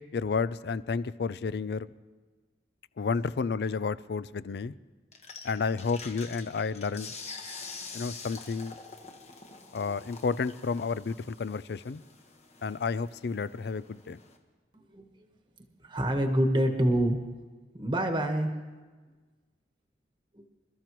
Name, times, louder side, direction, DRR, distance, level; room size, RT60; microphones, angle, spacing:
voice 1, 0.1-1.9 3.0-4.7 5.4-7.1 7.9-8.8 9.7-12.0 12.6-14.2, left 5 dB, 60° left, 17 dB, 0.4 m, -31 dB
sound 1, 5.1-14.4, left 4 dB, 40° left, 1.3 m, -46 dB
voice 2, 14.7-15.3 15.8-17.2 17.7-18.5 20.3-20.4, right 1 dB, 25° right, 4 dB, 1.2 m, -27 dB
27.5 x 13.5 x 3.1 m, 1.4 s
head